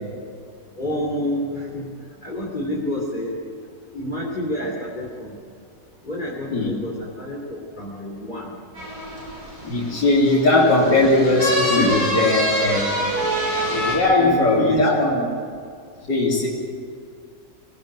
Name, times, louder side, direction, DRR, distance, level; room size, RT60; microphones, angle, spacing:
voice 1, 0.8-1.9 2.2-3.3 3.9-5.3 6.0-8.6 11.2-11.4 11.7-11.9 13.5-13.6 14.2-15.3, equal, 25° left, -3 dB, 3.2 m, -28 dB
sound 1, 8.8-14.0, equal, 55° right, 7.8 m, -25 dB
voice 2, 9.6-12.9 13.6-15.1 16.1-16.5, left 2 dB, 80° left, -6 dB, 4.0 m, -19 dB
24.5 x 18.5 x 9.1 m, 2.3 s
omnidirectional pair, 1.9 m